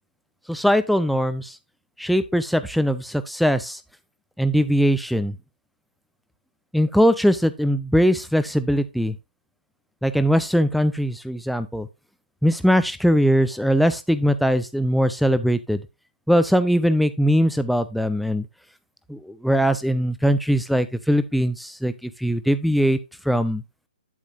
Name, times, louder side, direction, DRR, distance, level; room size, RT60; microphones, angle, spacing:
voice 1, 0.5-1.6 2.0-3.8 4.4-5.4 6.7-9.2 10.0-11.9 12.4-15.8 16.3-18.5 19.1-23.0 23.2-23.6, equal, ahead, 11 dB, 0.4 m, -21 dB
8.5 x 7.3 x 2.6 m, 0.24 s
hypercardioid pair, 145°, 5 cm